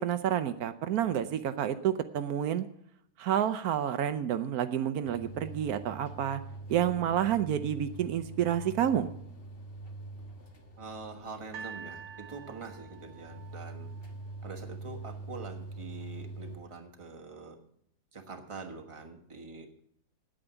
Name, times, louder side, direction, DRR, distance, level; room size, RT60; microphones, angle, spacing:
voice 1, 0.0-2.7 3.2-6.4 6.7-9.1, right 10 dB, 80° right, 11 dB, 1.1 m, -29 dB
sound 1, 5.1-16.6, right 2 dB, 40° left, 1.6 m, -44 dB
voice 2, 6.8-7.2 10.8-13.9 14.4-17.6 18.1-19.8, right 4 dB, 20° right, 2 dB, 1.3 m, -45 dB
sound 2, 11.5-14.7 15.5-15.6, right 7 dB, 50° right, 1.6 m, -47 dB
8.9 x 8.8 x 8.1 m, 0.70 s
omnidirectional pair, 1.6 m